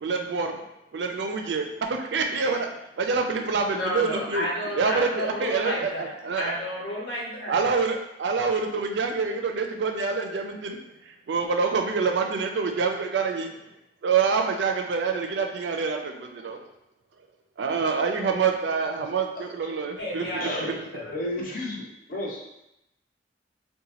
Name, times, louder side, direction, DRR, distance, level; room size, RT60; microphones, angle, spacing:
voice 1, 0.0-0.6 0.9-2.7 3.0-4.5 4.7-6.5 7.5-10.8 11.3-13.5 14.0-16.6 17.6-20.8, right 5 dB, 80° right, 4 dB, 0.4 m, -26 dB
voice 2, 3.7-6.1 6.4-7.6 20.0-21.1, equal, 80° left, -4 dB, 1.1 m, -31 dB
voice 3, 19.4-19.7 20.2-20.7 21.1-21.8 22.1-22.4, left 1 dB, 50° left, -3 dB, 0.8 m, -32 dB
3.9 x 2.2 x 2.9 m, 0.86 s
head